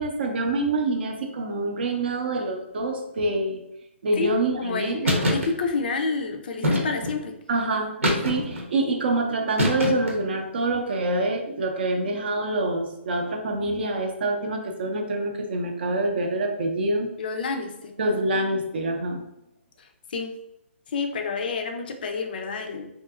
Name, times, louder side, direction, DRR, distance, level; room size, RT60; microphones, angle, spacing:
voice 1, 0.0-3.6 4.0-5.1 7.5-7.9 8.2-17.1 18.0-19.2, right 2 dB, 50° right, 3 dB, 0.5 m, -26 dB
voice 2, 4.2-7.4 17.2-17.9 19.8-20.3 20.9-22.9, left 4 dB, 45° left, 5 dB, 0.4 m, -29 dB
sound 1, 5.0-5.5 6.6-7.2 8.0-8.6 9.6-10.2, equal, 85° right, 0.9 m, -24 dB
3.0 x 2.7 x 2.4 m, 0.84 s
hypercardioid pair, 165°, 7 cm